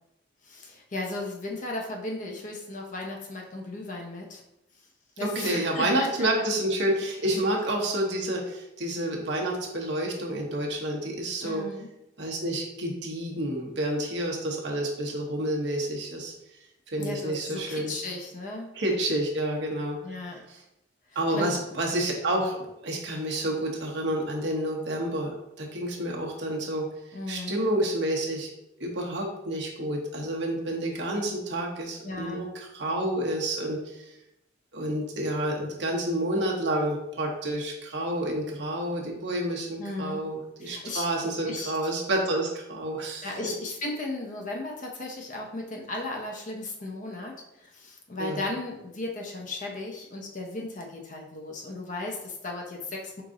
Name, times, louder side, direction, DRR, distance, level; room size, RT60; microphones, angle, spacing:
voice 1, 0.4-4.4 5.2-6.1 7.3-7.4 11.4-11.9 17.0-18.7 20.0-20.4 21.3-21.5 27.1-27.6 32.0-32.4 39.8-40.3 40.6-41.7 43.2-53.2, left 2 dB, 40° left, 0 dB, 0.6 m, -36 dB
voice 2, 5.2-11.6 12.2-16.3 16.9-17.9 18.7-20.0 21.1-22.6 22.8-26.9 27.3-28.5 28.8-34.1 34.7-43.3 48.2-48.4, right 1 dB, 65° right, -1 dB, 0.9 m, -29 dB
4.7 x 2.5 x 3.7 m, 0.86 s
head